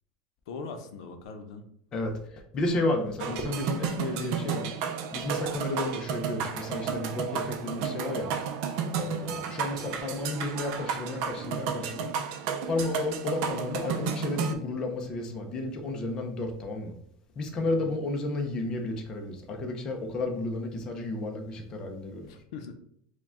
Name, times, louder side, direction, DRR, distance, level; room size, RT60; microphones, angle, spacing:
voice 1, 0.5-1.7 17.6-17.9 22.2-22.7, left 4 dB, 80° left, 7 dB, 0.6 m, -41 dB
voice 2, 2.5-4.7 5.1-8.3 9.0-12.1 12.7-16.9 17.4-22.3, left 2 dB, 25° left, 3 dB, 0.5 m, -32 dB
sound 1, 3.2-14.5, right 7 dB, 55° right, 0.5 m, -32 dB
4.7 x 2.2 x 3.6 m, 0.69 s
cardioid pair, 170°, 3 cm